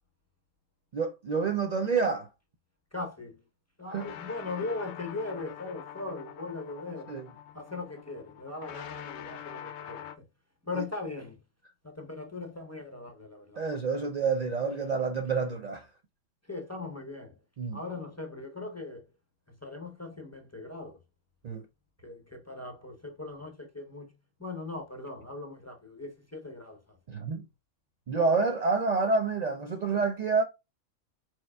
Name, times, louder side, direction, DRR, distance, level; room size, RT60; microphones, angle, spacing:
voice 1, 0.9-2.3 3.9-4.0 7.1-7.3 10.7-10.8 13.6-15.9 17.6-17.8 21.4-21.6 27.1-27.4 28.1-30.4, right 4 dB, 85° right, 0.3 m, -28 dB
voice 2, 2.9-3.4 3.8-7.1 7.5-10.3 10.6-11.4 11.8-13.6 16.4-17.4 17.7-19.1 19.5-21.0 22.0-27.0, left 3 dB, 15° left, 0.6 m, -39 dB
sound 1, 3.9-10.2, left 10 dB, 65° left, 0.8 m, -45 dB
4.6 x 4.3 x 2.3 m
omnidirectional pair, 1.3 m